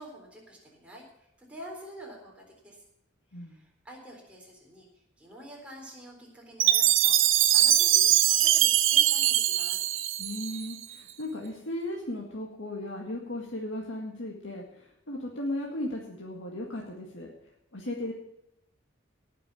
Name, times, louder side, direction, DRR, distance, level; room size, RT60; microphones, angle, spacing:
voice 1, 0.0-2.8 3.4-4.9 5.2-9.8, equal, 5° right, -2 dB, 3.8 m, -47 dB
Chime, 6.6-10.8, right 12 dB, 85° right, 0.8 m, -22 dB
voice 2, 10.2-17.3 17.7-18.1, left 1 dB, 75° left, -1 dB, 1.9 m, -36 dB
18.0 x 6.6 x 7.1 m, 0.81 s
head